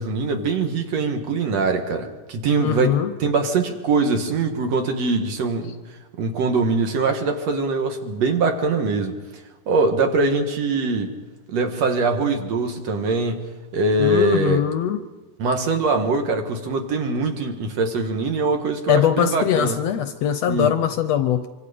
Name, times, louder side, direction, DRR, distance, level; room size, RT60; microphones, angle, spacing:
voice 1, 0.0-5.8 6.2-9.2 9.7-11.2 11.5-14.6 15.4-19.8 20.5-20.8, right 3 dB, 60° right, 5 dB, 2.6 m, -22 dB
voice 2, 2.6-3.1 14.0-15.0 18.9-21.5, left 10 dB, 70° left, 9 dB, 1.7 m, -21 dB
25.0 x 24.5 x 5.1 m, 1.2 s
omnidirectional pair, 3.5 m